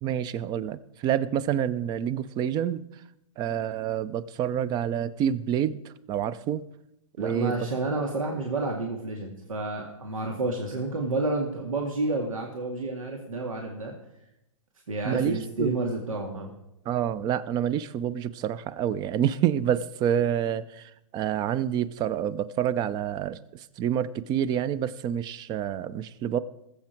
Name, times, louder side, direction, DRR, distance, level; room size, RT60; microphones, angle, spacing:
voice 1, 0.0-2.8 3.4-5.8 6.1-6.6 7.2-7.7 15.0-15.7 16.9-20.8 21.1-23.4 23.8-26.4, right 9 dB, 25° right, 18 dB, 0.5 m, -27 dB
voice 2, 7.2-13.9 14.9-16.5, right 2 dB, 85° right, 1 dB, 2.1 m, -30 dB
20.0 x 7.6 x 4.5 m, 0.86 s
hypercardioid pair, 130°, 17 cm